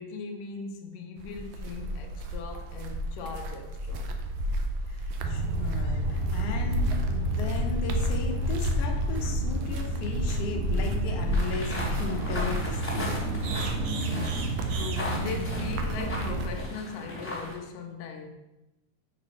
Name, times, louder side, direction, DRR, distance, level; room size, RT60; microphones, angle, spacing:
voice 1, 0.0-4.2 14.7-18.3, left 4 dB, 85° left, 4 dB, 2.4 m, -39 dB
sound 1, 1.2-16.6, equal, 90° right, 2.3 m, -32 dB
voice 2, 4.9-13.3, left 4 dB, 65° left, 1 dB, 1.7 m, -36 dB
sound 2, 5.2-16.5, right 1 dB, 75° right, 2.0 m, -31 dB
sound 3, 11.3-17.6, left 1 dB, 15° left, 1.2 m, -37 dB
7.3 x 4.1 x 5.2 m, 0.99 s
omnidirectional pair, 3.8 m